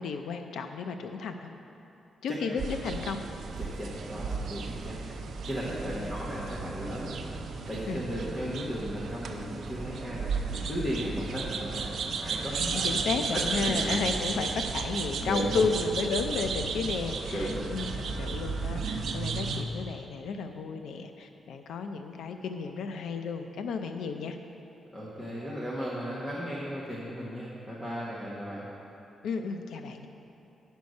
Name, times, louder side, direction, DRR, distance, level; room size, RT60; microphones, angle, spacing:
voice 1, 0.0-1.5 2.2-3.2 7.9-8.0 12.6-24.4 29.2-30.1, left 5 dB, 85° left, 6 dB, 0.4 m, -33 dB
sound 1, 2.6-19.6, right 5 dB, 60° right, 0.6 m, -34 dB
voice 2, 3.6-5.0 5.4-12.9 13.3-13.9 15.2-15.7 17.3-17.7 24.9-28.7, equal, 20° left, -7 dB, 1.1 m, -36 dB
9.3 x 6.2 x 5.3 m, 2.8 s
wide cardioid pair, 135°, 0 cm